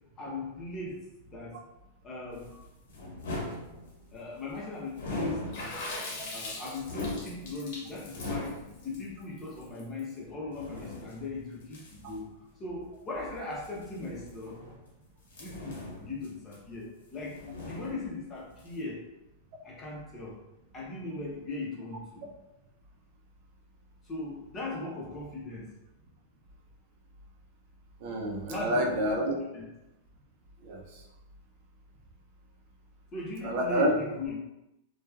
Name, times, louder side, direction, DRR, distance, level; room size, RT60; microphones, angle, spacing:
voice 1, 0.2-1.6 2.0-2.5 4.1-5.8 6.3-12.3 12.6-14.6 15.4-19.0 19.6-20.4 20.7-22.3 24.0-25.7 28.4-29.0 29.5-29.6 33.1-34.4, left 2 dB, 25° left, -4 dB, 0.8 m, -39 dB
sound 1, 2.3-4.2 4.9-6.0 6.4-8.9 9.6-9.7 10.5-12.2 13.5-14.9 15.3-16.9 17.1-18.3 18.6-18.8, left 2 dB, 85° left, 0.9 m, -40 dB
Water / Splash splatter, 5.5-10.0, left 2 dB, 60° left, 0.9 m, -40 dB
voice 2, 28.0-29.4 30.6-31.0 33.4-34.0, equal, 55° right, 0 dB, 0.5 m, -28 dB
2.9 x 2.2 x 2.3 m, 0.93 s
hypercardioid pair, 130°, 0 cm